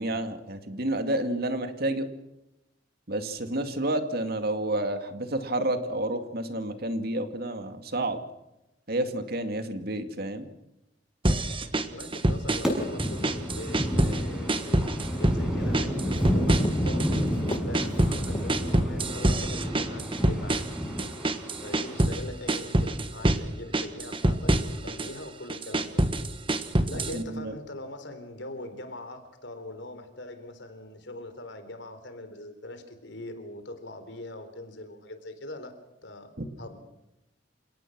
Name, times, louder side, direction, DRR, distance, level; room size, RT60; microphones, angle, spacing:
voice 1, 0.0-2.1 3.1-8.2 8.9-10.5 27.1-27.5, right 1 dB, 60° right, 8 dB, 2.2 m, -30 dB
sound 1, 11.2-12.7 13.0-14.2 14.5-15.4 15.7-17.2 17.5-22.2 22.5-23.4 23.7-25.1 25.5-27.2, right 1 dB, 30° right, 1.4 m, -26 dB
voice 2, 11.8-16.5 16.8-20.6 21.6-26.0 26.9-35.7 36.0-36.3 36.6-36.8, left 1 dB, 80° left, 9 dB, 3.7 m, -42 dB
sound 2, 12.6-22.0, equal, 5° right, 6.6 m, -30 dB
Walk footsteps, 15.0-19.4, left 1 dB, 30° left, 1.6 m, -41 dB
28.5 x 18.0 x 6.1 m, 0.90 s
head